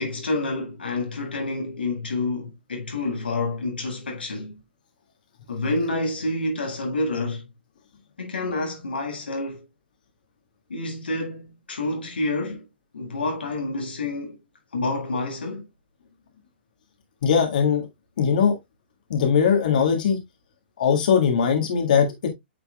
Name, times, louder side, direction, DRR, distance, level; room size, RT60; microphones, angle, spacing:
voice 1, 0.0-4.6 5.5-7.5 8.2-9.6 10.7-12.6 12.9-14.4 14.7-15.7, left 2 dB, 65° left, 1.6 m, -28 dB
voice 2, 17.2-17.9 18.2-18.6 19.1-20.2 20.8-22.3, left 7 dB, 50° left, 1.7 m, -20 dB
8.9 x 4.6 x 2.3 m
figure-of-eight pair, 120°, 6 cm